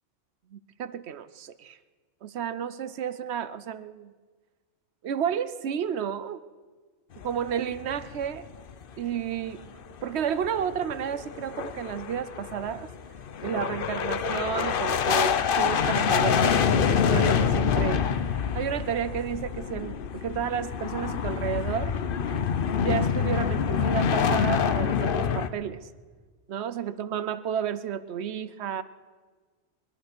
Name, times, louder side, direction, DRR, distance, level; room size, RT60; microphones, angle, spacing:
voice 1, 0.5-1.8 2.2-4.1 5.0-6.4 7.2-8.5 9.0-9.7 10.0-12.9 13.4-18.0 18.5-21.9 22.8-25.9 26.5-28.8, right 8 dB, 65° right, 14 dB, 0.9 m, -31 dB
sound 1, 7.2-8.8 9.1-9.2 9.6-9.7 10.1-25.5, left 7 dB, 55° left, 0.8 m, -26 dB
21.0 x 11.0 x 6.0 m, 1.4 s
omnidirectional pair, 1.3 m